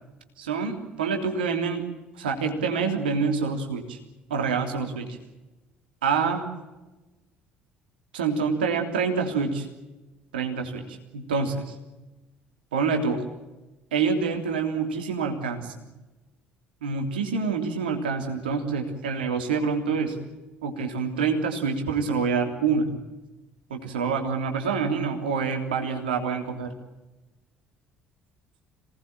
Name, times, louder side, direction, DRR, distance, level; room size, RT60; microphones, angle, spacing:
voice 1, 0.4-4.0 4.3-5.2 6.0-6.5 8.1-9.7 10.3-11.6 12.7-13.2 13.9-15.9 16.8-20.2 20.6-22.9 23.7-26.7, right 5 dB, 75° right, 4 dB, 3.2 m, -27 dB
27.0 x 19.0 x 8.9 m, 1.1 s
figure-of-eight pair, 55°, 5 cm